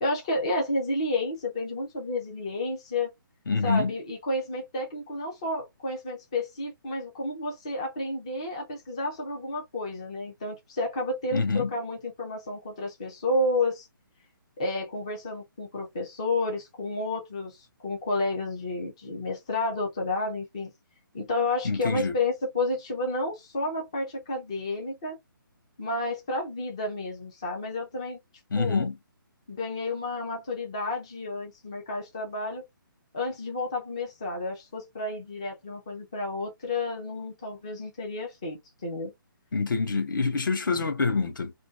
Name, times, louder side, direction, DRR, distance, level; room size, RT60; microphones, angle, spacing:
voice 1, 0.0-3.1 3.6-13.9 14.6-20.7 21.1-25.2 25.8-28.2 28.5-28.9 29.5-32.6 33.1-39.1, left 2 dB, 15° left, 0.4 m, -31 dB
voice 2, 3.5-3.9 11.3-11.7 21.6-22.2 28.5-29.0 39.5-41.5, left 4 dB, 65° left, 0.8 m, -26 dB
2.5 x 2.2 x 2.2 m
hypercardioid pair, 175°, 12 cm